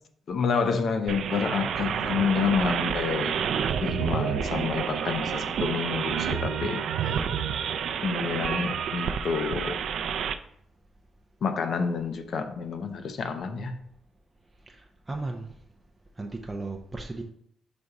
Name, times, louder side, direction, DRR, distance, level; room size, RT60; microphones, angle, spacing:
voice 1, 0.3-3.4 3.8-6.8 8.0-9.8 11.4-13.8, left 5 dB, 55° left, 0.7 m, -28 dB
sound 1, 1.1-10.3, right 7 dB, 70° right, 0.4 m, -29 dB
voice 2, 14.6-15.6 16.2-17.2, right 2 dB, 15° right, 0.5 m, -36 dB
5.2 x 4.1 x 4.8 m
wide cardioid pair, 150°, 0 cm